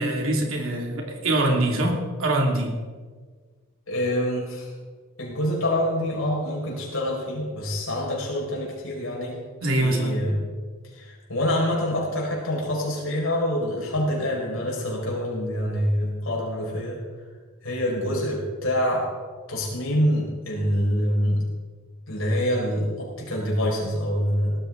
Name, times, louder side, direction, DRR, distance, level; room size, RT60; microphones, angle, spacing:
voice 1, 0.0-2.7 9.6-10.2, right 1 dB, 75° right, 1 dB, 2.7 m, -24 dB
voice 2, 3.9-4.7 5.2-9.4 9.8-10.4 10.9-17.0 17.6-19.1 19.5-21.4 22.1-24.6, equal, 75° left, -3 dB, 5.5 m, -26 dB
18.5 x 13.5 x 3.9 m, 1.5 s
head